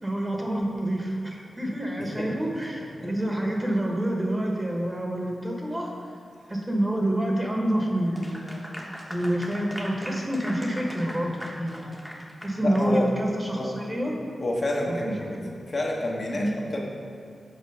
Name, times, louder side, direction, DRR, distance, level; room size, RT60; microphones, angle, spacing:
voice 1, 0.0-5.9 6.5-8.6 9.1-11.9 12.4-14.2 14.9-15.3 16.3-16.5, right 1 dB, 20° right, 0 dB, 1.0 m, -27 dB
Clapping / Applause, 8.1-12.9, equal, 5° left, 0.9 m, -40 dB
voice 2, 12.6-13.1 13.5-13.7 14.4-15.4 15.7-16.8, left 1 dB, 45° left, -2 dB, 1.0 m, -29 dB
6.7 x 4.4 x 5.4 m, 2.3 s
wide cardioid pair, 90°, 0 cm